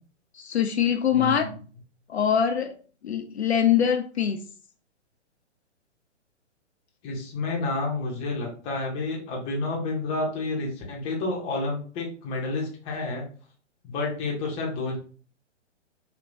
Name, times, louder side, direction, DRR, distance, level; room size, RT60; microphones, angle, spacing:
voice 1, 0.4-1.5 2.1-2.7 3.0-4.4, left 8 dB, 60° left, 6 dB, 0.5 m, -23 dB
voice 2, 1.1-1.5 7.0-13.3 13.8-15.0, left 3 dB, 15° left, -1 dB, 0.8 m, -30 dB
3.2 x 2.9 x 2.6 m, 0.40 s
figure-of-eight pair, 120°, 36 cm